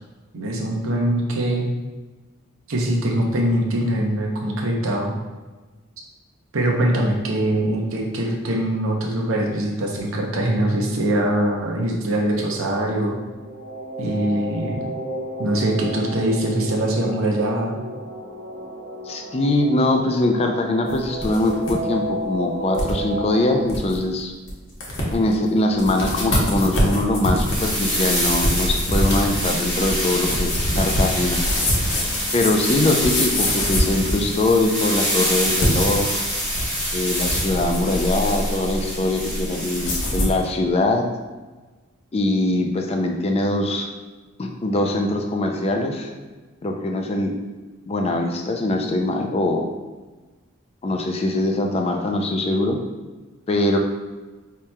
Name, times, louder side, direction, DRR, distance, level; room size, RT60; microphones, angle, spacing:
voice 1, 0.3-1.6 2.7-5.1 6.5-13.2 14.0-14.9 15.4-17.7, right 1 dB, 75° right, 0 dB, 0.7 m, -22 dB
sound 1, 13.1-23.6, right 1 dB, 40° right, 0.8 m, -32 dB
voice 2, 19.0-24.3 25.1-31.4 32.3-36.2 36.9-41.1 42.1-43.9 44.4-46.1 46.6-47.4 47.9-49.7 50.8-52.8 53.5-53.8, left 2 dB, 30° left, 3 dB, 0.3 m, -22 dB
sound 2, 20.9-21.7 22.1-22.2 22.7-23.0 23.4-23.5 23.7-24.0 24.5-24.6 24.8-25.3 25.8-34.6 35.5-36.7 37.1-38.0 39.7-40.4, equal, 60° left, 0.8 m, -24 dB
sound 3, 27.4-40.2, equal, 5° left, 1.2 m, -26 dB
4.7 x 2.8 x 2.2 m, 1.3 s
head